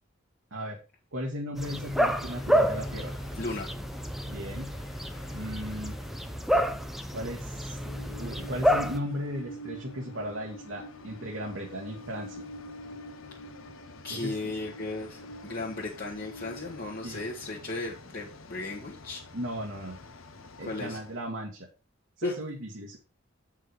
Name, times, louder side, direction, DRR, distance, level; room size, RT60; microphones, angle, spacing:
voice 1, 1.1-3.1 4.2-4.7 5.3-6.0 7.1-7.8 8.2-12.4 14.1-14.5 17.0-17.2 19.3-20.0 20.6-21.7 22.2-23.0, equal, 75° right, 0 dB, 1.6 m, -36 dB
sound 1, 1.6-9.0, equal, ahead, 0.6 m, -29 dB
Train, 1.7-21.2, left 1 dB, 85° left, 0.9 m, -47 dB
voice 2, 3.3-3.7 14.0-19.2 20.6-21.0 22.2-22.3, left 2 dB, 50° left, -4 dB, 1.4 m, -35 dB
8.1 x 5.6 x 4.7 m, 0.33 s
head